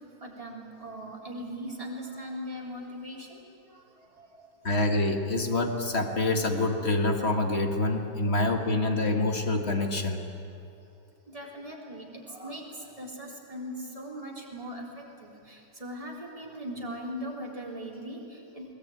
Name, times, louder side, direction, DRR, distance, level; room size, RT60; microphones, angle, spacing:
voice 1, 0.2-3.4 4.2-4.5 8.2-8.3 11.3-12.6 13.0-18.7, equal, 20° right, -3 dB, 3.8 m, -39 dB
voice 2, 4.6-10.2, left 2 dB, 40° left, 3 dB, 2.0 m, -26 dB
22.0 x 19.5 x 9.1 m, 2.8 s
omnidirectional pair, 1.8 m